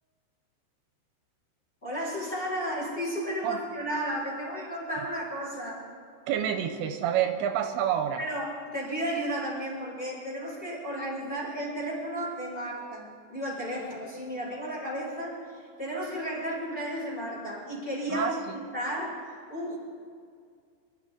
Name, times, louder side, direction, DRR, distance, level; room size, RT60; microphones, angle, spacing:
voice 1, 1.8-5.8 8.2-19.2 19.5-19.8, equal, 10° left, -6 dB, 3.8 m, -33 dB
voice 2, 6.3-8.2 18.1-18.4, right 9 dB, 85° right, 6 dB, 2.9 m, -28 dB
24.5 x 12.5 x 3.7 m, 2.2 s
omnidirectional pair, 5.3 m